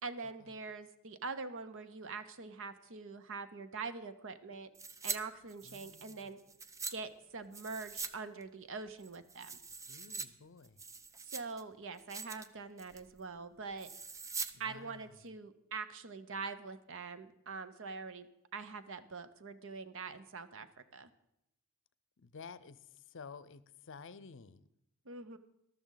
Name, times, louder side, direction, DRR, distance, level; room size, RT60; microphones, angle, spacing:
voice 1, 0.0-4.7 5.0-6.4 6.9-9.5 11.2-13.9 14.6-20.7 20.9-21.1 25.0-25.4, right 4 dB, 60° right, 12 dB, 0.9 m, -44 dB
sound 1, 4.7-5.2 5.5-6.9 7.5-8.1 8.4-8.5 9.0-10.3 10.6-11.6 12.0-12.5 12.8-13.1 13.8-14.5 14.8-14.9, right 4 dB, 15° right, 0.4 m, -43 dB
voice 2, 5.6-6.3 9.9-10.8 14.6-15.1 22.2-24.6, left 5 dB, 60° left, 16 dB, 0.6 m, -52 dB
13.5 x 12.5 x 4.0 m, 0.85 s
head